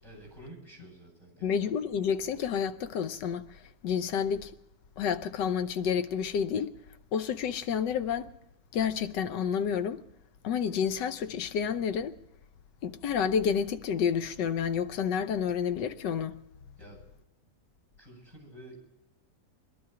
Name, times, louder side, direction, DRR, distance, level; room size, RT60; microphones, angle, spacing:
voice 1, 0.0-1.6 16.8-17.0 18.0-18.8, right 1 dB, 50° left, 8.2 m, -50 dB
voice 2, 1.4-4.5 5.0-6.7 7.1-8.3 8.7-10.0 10.4-12.1 12.8-16.4, left 7 dB, 85° left, 1.5 m, -29 dB
22.0 x 12.0 x 4.9 m
omnidirectional pair, 1.8 m